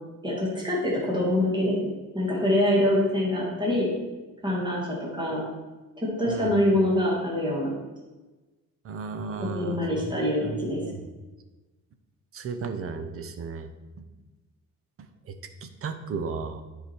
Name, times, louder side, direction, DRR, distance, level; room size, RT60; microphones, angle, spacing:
voice 1, 0.2-1.9 2.1-3.9 4.4-5.4 6.2-7.7 9.4-10.8, left 1 dB, 15° right, -5 dB, 2.1 m, -25 dB
voice 2, 6.3-6.6 8.8-10.6 10.8-11.0 12.3-13.7 15.6-16.6, right 5 dB, 40° right, 8 dB, 0.8 m, -34 dB
10.0 x 5.0 x 4.5 m, 1.2 s
cardioid pair, 160°, 33 cm